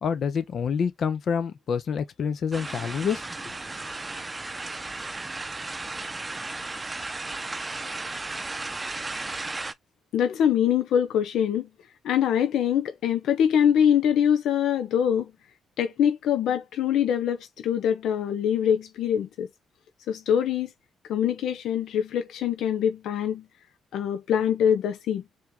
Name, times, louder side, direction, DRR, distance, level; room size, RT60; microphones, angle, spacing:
voice 1, 0.0-3.2, left 6 dB, 55° left, 1.0 m, -27 dB
sound 1, 2.5-9.7, right 2 dB, 20° right, 0.7 m, -34 dB
voice 2, 10.1-11.7 12.0-15.3 15.8-19.5 20.1-20.7 21.1-23.4 23.9-25.2, left 9 dB, 80° left, 0.8 m, -24 dB
4.5 x 3.1 x 3.5 m
cardioid pair, 90°, 0 cm